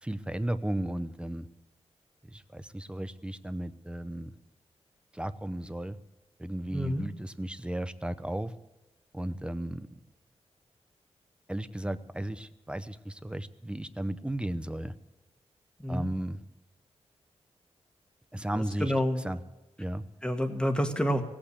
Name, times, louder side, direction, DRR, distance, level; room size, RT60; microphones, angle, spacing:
voice 1, 0.0-1.5 2.2-4.3 5.1-6.0 6.4-8.5 9.1-9.9 11.5-14.9 15.9-16.4 18.3-18.9 19.2-19.4 19.8-20.0, right 1 dB, 10° right, 13 dB, 0.7 m, -34 dB
voice 2, 6.7-7.0 15.8-16.1 18.8-19.2 20.2-21.2, equal, 10° left, 6 dB, 1.6 m, -28 dB
17.0 x 8.8 x 8.2 m, 1.1 s
wide cardioid pair, 100°, 11 cm